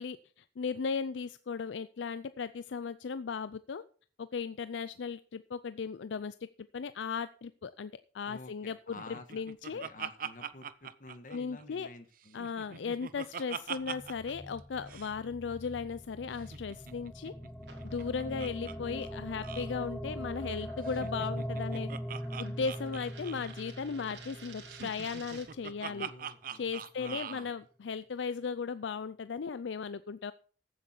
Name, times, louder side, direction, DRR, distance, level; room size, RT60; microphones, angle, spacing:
voice 1, 0.0-3.8 4.2-6.4 6.7-9.8 11.3-11.9 12.3-17.3 17.8-21.9 22.4-26.1 26.6-30.3, left 5 dB, 85° left, 14 dB, 0.4 m, -37 dB
voice 2, 8.2-9.4 9.7-12.5 25.8-27.5, left 2 dB, 45° left, 8 dB, 1.5 m, -50 dB
Laughter, 9.0-11.9 12.2-14.3 14.6-14.7 14.9-15.1 16.4-18.7 19.0-19.1 19.4-19.7 20.8-23.6 24.7-27.4, right 7 dB, 50° right, 0.6 m, -43 dB
sound 1, 13.8-26.0, equal, 5° left, 0.8 m, -41 dB
sound 2, 17.6-25.7, right 5 dB, 70° right, 3.2 m, -55 dB
14.5 x 8.1 x 4.5 m, 0.42 s
head